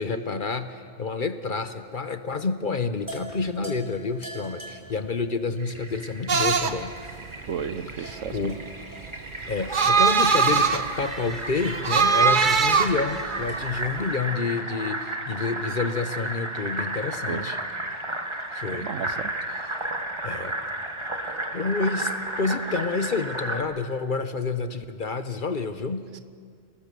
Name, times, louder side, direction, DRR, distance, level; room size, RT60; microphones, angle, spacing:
voice 1, 0.0-6.9 8.0-8.6 9.5-17.6 18.5-18.9 20.2-20.6 21.5-26.1, left 4 dB, 45° left, 10 dB, 1.0 m, -29 dB
sound 1, 3.0-14.0, right 1 dB, 15° left, 2.8 m, -46 dB
Fill (with liquid), 5.6-23.6, right 1 dB, 25° right, 1.7 m, -33 dB
sound 2, 6.3-14.0, right 5 dB, 45° right, 1.0 m, -23 dB
voice 2, 7.5-8.6 17.3-17.5 18.6-19.3 26.1-26.2, right 7 dB, 75° right, 12 dB, 1.3 m, -33 dB
29.5 x 20.0 x 6.8 m, 2.1 s
omnidirectional pair, 1.3 m